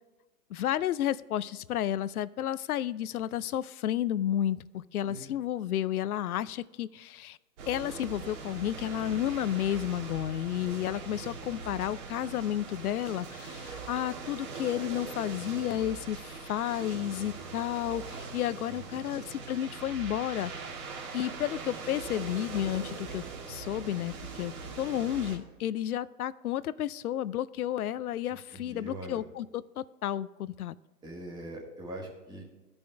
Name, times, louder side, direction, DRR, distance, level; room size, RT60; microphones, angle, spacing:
voice 1, 0.5-7.4 7.7-20.5 21.1-30.8, left 11 dB, 65° left, 18 dB, 0.5 m, -32 dB
sound 1, 7.6-25.4, right 4 dB, 45° right, 2.2 m, -41 dB
voice 2, 18.7-19.0 28.5-29.2 31.0-32.4, right 1 dB, 10° right, -2 dB, 1.6 m, -42 dB
14.5 x 5.3 x 3.4 m, 1.2 s
hypercardioid pair, 135°, 47 cm